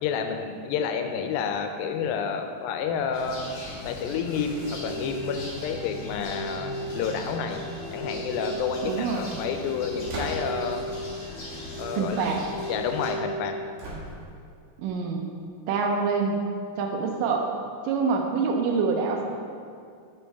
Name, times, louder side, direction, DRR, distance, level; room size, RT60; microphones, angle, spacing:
voice 1, 0.0-3.6 3.9-7.6 7.9-10.9 11.8-12.3 12.7-13.6, left 6 dB, 85° left, 6 dB, 2.3 m, -30 dB
sound 1, 3.1-13.1, left 2 dB, 45° left, 1.7 m, -39 dB
sound 2, 4.5-13.6, right 1 dB, 40° right, 1.0 m, -37 dB
voice 2, 8.8-9.4 12.0-12.4 14.8-15.3 15.7-16.4 16.8-17.5 17.8-19.2, right 5 dB, 80° right, 2 dB, 2.1 m, -26 dB
sound 3, 10.0-10.7 13.8-14.5, right 1 dB, 60° right, 2.5 m, -36 dB
9.0 x 5.3 x 3.4 m, 2.3 s
omnidirectional pair, 4.1 m